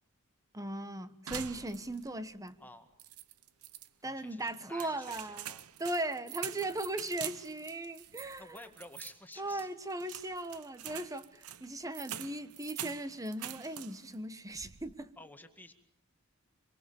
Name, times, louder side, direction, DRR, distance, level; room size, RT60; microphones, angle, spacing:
voice 1, 0.5-2.6 4.0-5.5 5.8-8.6 9.4-15.1, right 1 dB, 15° right, 1.3 m, -38 dB
sound 1, 1.3-2.2 2.5-2.6 3.0-3.9 4.5-14.2 14.5-15.0, right 11 dB, 80° right, 0.9 m, -45 dB
voice 2, 4.0-5.7 8.4-9.7 15.2-15.7, left 2 dB, 10° left, 2.0 m, -52 dB
26.0 x 24.0 x 7.1 m
head